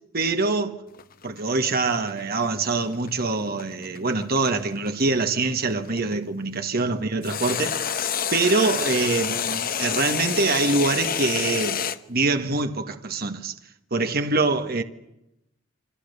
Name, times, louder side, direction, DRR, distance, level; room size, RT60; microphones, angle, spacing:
voice 1, 0.1-0.8 1.2-7.8 8.3-11.8 12.1-13.6 13.9-14.8, right 3 dB, 50° right, 1.8 m, -24 dB
sound 1, 0.9-6.1 7.2-12.0, left 8 dB, 45° left, 1.1 m, -28 dB
27.5 x 25.5 x 7.0 m
head